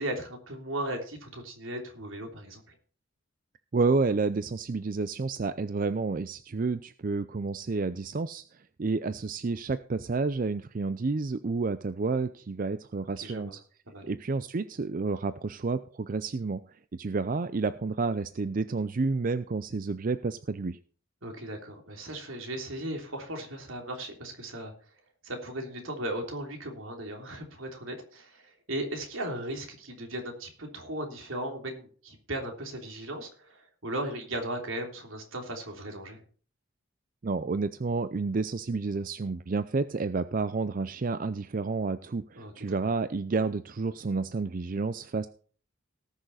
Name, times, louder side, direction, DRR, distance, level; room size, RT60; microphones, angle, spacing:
voice 1, 0.0-2.7 13.2-13.5 13.9-14.1 21.2-24.7 25.2-36.2 42.3-42.5, right 1 dB, 80° right, 3 dB, 3.2 m, -37 dB
voice 2, 3.7-13.6 14.0-20.8 37.2-45.3, right 4 dB, 40° right, 12 dB, 0.5 m, -30 dB
18.5 x 6.5 x 4.1 m, 0.43 s
head